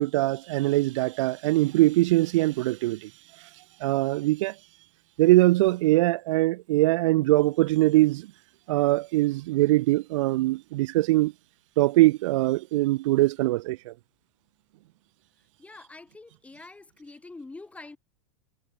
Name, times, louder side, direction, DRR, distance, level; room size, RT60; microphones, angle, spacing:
voice 1, 0.0-3.1 3.8-4.5 5.2-8.3 8.7-11.3 11.8-13.9, right 18 dB, 60° right, 0.7 m, -22 dB
voice 2, 15.6-18.0, left 3 dB, 5° left, 5.4 m, -45 dB
supercardioid pair, 145°, 18 cm